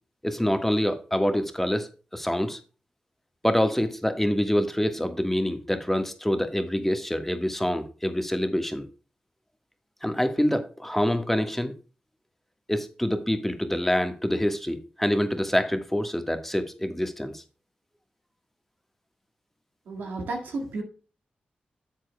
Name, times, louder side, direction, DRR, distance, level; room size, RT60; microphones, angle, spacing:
voice 1, 0.2-2.6 3.4-8.9 10.0-11.7 12.7-17.4, left 1 dB, 10° left, 1.4 m, -26 dB
voice 2, 19.9-20.8, right 2 dB, 90° right, 1.9 m, -32 dB
11.5 x 7.6 x 2.2 m
cardioid pair, 50°, 3 cm